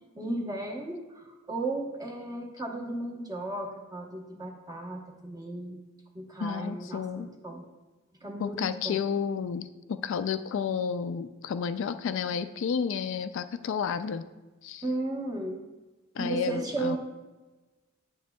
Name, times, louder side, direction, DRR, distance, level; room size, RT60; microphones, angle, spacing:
voice 1, 0.2-5.8 6.1-7.6 8.2-9.0 14.8-15.6 16.2-17.0, right 2 dB, 20° right, 1 dB, 0.9 m, -35 dB
voice 2, 6.4-7.3 8.4-9.7 10.0-14.2 14.6-14.8 16.2-17.0, left 6 dB, 65° left, 11 dB, 0.3 m, -31 dB
9.1 x 8.0 x 2.3 m, 1.2 s
head